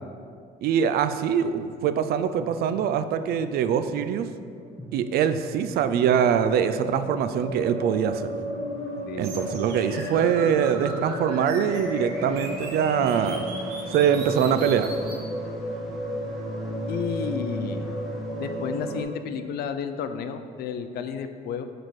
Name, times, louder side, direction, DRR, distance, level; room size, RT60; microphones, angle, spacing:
voice 1, 0.6-4.3 4.9-8.3 9.2-13.4 13.9-14.9, right 8 dB, 65° right, 11 dB, 0.4 m, -23 dB
sound 1, 2.4-2.5 3.3-3.4 3.9-4.0 4.6-19.0, equal, ahead, 1.3 m, -33 dB
sound 2, 9.2-15.2, right 2 dB, 85° right, 1.3 m, -39 dB
voice 2, 16.9-17.9 18.4-21.6, left 7 dB, 70° left, 9 dB, 0.5 m, -32 dB
6.3 x 4.1 x 4.7 m, 2.2 s
cardioid pair, 110°, 17 cm